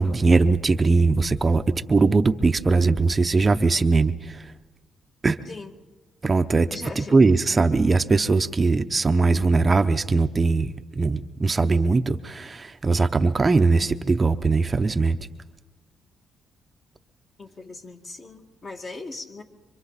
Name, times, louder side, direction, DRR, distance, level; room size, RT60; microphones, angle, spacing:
voice 1, 0.0-1.6 1.9-4.5 5.2-5.4 6.2-6.7 7.0-15.2, right 3 dB, 30° right, 8 dB, 0.7 m, -20 dB
voice 2, 6.7-7.2 17.4-19.4, left 3 dB, 40° left, 3 dB, 2.1 m, -39 dB
25.5 x 25.0 x 4.1 m, 1.2 s
cardioid pair, 90°, 0 cm